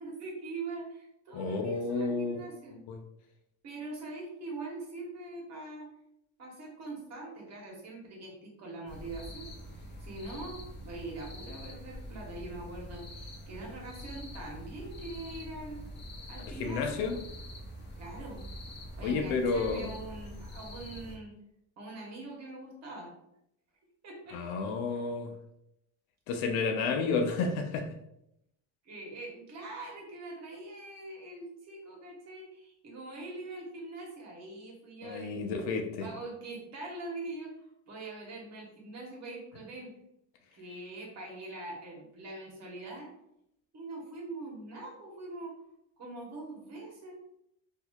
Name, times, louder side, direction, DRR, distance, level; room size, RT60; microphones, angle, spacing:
voice 1, 0.0-2.8 3.6-5.9 6.4-9.5 10.0-15.8 16.3-17.2 18.0-18.4 19.0-21.3 21.8-23.1 24.0-24.4 24.9-25.0 28.8-35.6 36.0-37.5 37.9-39.9 40.5-43.1 43.7-45.6 46.0-47.2, right 2 dB, 40° right, -1 dB, 1.2 m, -43 dB
voice 2, 1.3-2.4 2.9-3.0 16.5-17.2 19.0-19.9 24.3-25.3 26.3-27.9 35.0-36.1, left 4 dB, 70° left, 4 dB, 0.8 m, -31 dB
sound 1, 8.9-21.2, equal, 25° left, 0.7 m, -45 dB
4.3 x 2.7 x 2.4 m, 0.81 s
cardioid pair, 135°, 39 cm